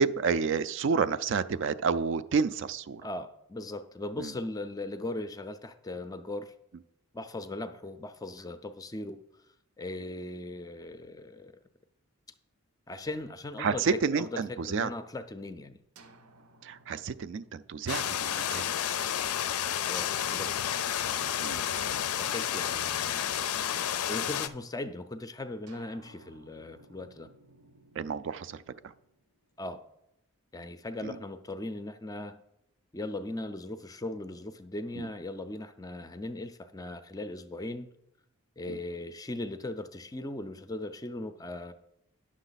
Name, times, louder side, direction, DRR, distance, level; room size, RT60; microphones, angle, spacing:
voice 1, 0.0-3.0 4.2-4.3 13.6-14.9 16.6-18.7 21.4-21.6 28.0-28.6 31.0-31.2 34.9-35.1 38.7-38.8, right 5 dB, 55° right, 14 dB, 0.3 m, -30 dB
voice 2, 3.0-6.5 7.1-9.2 9.8-11.5 12.9-13.8 14.1-14.3 14.6-15.8 19.9-20.5 22.2-23.7 24.1-27.3 29.6-29.8 30.5-32.4 32.9-37.9 38.6-41.7, left 2 dB, 15° left, 10 dB, 0.4 m, -39 dB
sound 1, 15.9-19.7 21.1-24.6 25.7-29.8, right 2 dB, 85° right, 0.9 m, -57 dB
sound 2, 17.9-24.5, left 10 dB, 85° left, 0.5 m, -31 dB
9.9 x 6.3 x 4.0 m, 0.81 s
head